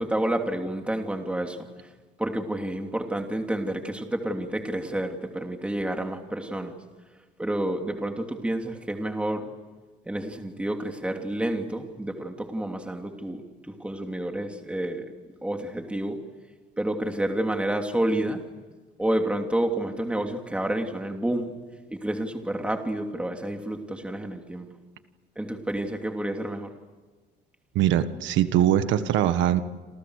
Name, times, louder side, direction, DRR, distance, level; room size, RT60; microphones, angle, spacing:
voice 1, 0.0-1.7 2.2-6.8 7.4-9.5 10.0-15.1 15.4-16.2 16.8-18.4 19.0-21.5 21.9-24.7 25.4-26.7, right 1 dB, 5° right, 3 dB, 3.1 m, -29 dB
voice 2, 27.8-29.6, right 11 dB, 85° right, 10 dB, 1.6 m, -22 dB
28.5 x 28.0 x 6.6 m, 1.3 s
cardioid pair, 140°, 19 cm